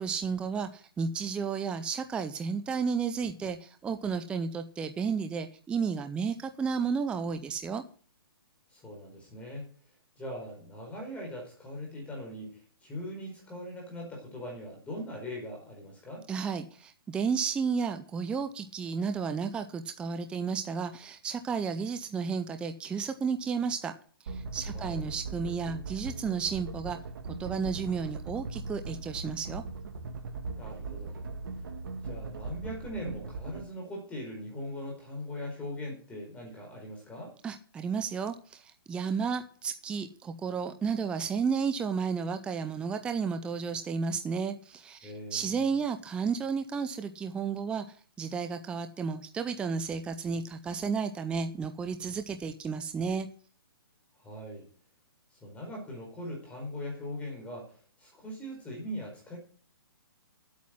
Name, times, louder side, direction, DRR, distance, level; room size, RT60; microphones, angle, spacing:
voice 1, 0.0-7.8 16.3-23.9 24.2-27.0 27.4-29.6 37.4-53.3, right 5 dB, 10° right, 8 dB, 0.5 m, -32 dB
voice 2, 8.7-9.7 10.2-16.3 24.7-25.1 30.5-31.3 32.0-37.3 45.0-45.7 54.2-54.7 55.4-59.4, left 1 dB, 10° left, 0 dB, 4.6 m, -41 dB
sound 1, 24.3-33.6, right 4 dB, 60° right, 1.9 m, -39 dB
9.2 x 8.5 x 7.7 m, 0.43 s
hypercardioid pair, 155°, 12 cm